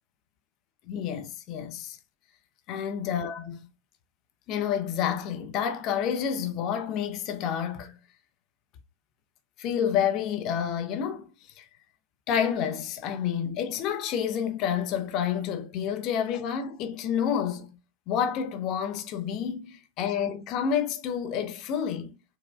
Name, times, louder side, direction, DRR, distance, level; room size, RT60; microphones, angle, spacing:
voice 1, 0.9-2.0 2.7-3.6 4.5-8.0 9.6-11.3 11.6-11.7 12.3-17.8 18.1-22.1, left 8 dB, 40° left, 0.5 m, -29 dB
4.3 x 2.1 x 2.3 m
figure-of-eight pair, 90°, 0 cm